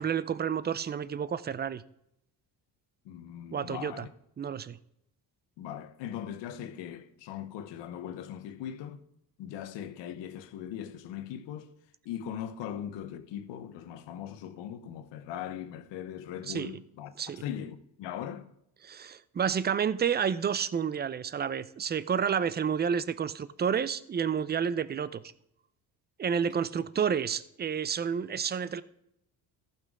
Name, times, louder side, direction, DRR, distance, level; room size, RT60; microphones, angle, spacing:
voice 1, 0.0-1.8 3.5-4.1 4.4-4.8 16.5-16.7 17.2-17.4 18.8-25.2 26.2-28.8, right 7 dB, 25° right, 0.5 m, -30 dB
voice 2, 3.0-4.1 5.6-9.0 9.4-11.7 12.0-18.5, left 10 dB, 85° left, 0.9 m, -40 dB
14.5 x 5.9 x 3.6 m
cardioid pair, 85°, 42 cm